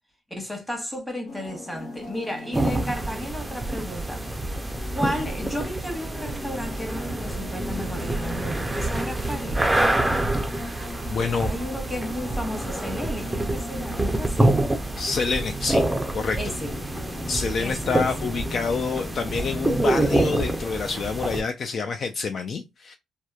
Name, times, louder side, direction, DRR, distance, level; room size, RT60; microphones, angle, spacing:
voice 1, 0.3-4.3 4.9-9.6 11.4-14.6 16.3-16.7 17.6-18.1, equal, 5° left, 1.0 m, -33 dB
sound 1, 1.3-20.3, left 2 dB, 70° left, 1.0 m, -41 dB
sound 2, 2.5-21.4, right 1 dB, 15° right, 0.4 m, -27 dB
sound 3, 8.8-21.2, equal, 30° left, 0.9 m, -42 dB
voice 2, 11.1-11.5 15.0-15.9 16.1-16.4 17.3-23.0, left 5 dB, 55° left, 0.3 m, -27 dB
2.8 x 2.1 x 2.3 m
cardioid pair, 90°, 0 cm